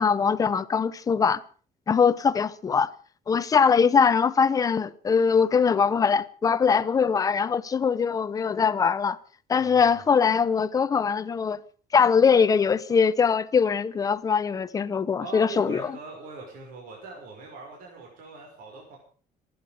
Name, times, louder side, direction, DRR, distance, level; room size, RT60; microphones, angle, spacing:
voice 1, 0.0-1.4 1.9-2.9 3.3-9.2 9.5-11.6 11.9-15.9, left 6 dB, 25° left, 0.7 m, -22 dB
voice 2, 9.6-10.0 15.2-19.0, right 3 dB, 70° right, 5.9 m, -42 dB
26.0 x 10.5 x 5.2 m
cardioid pair, 170°, 15 cm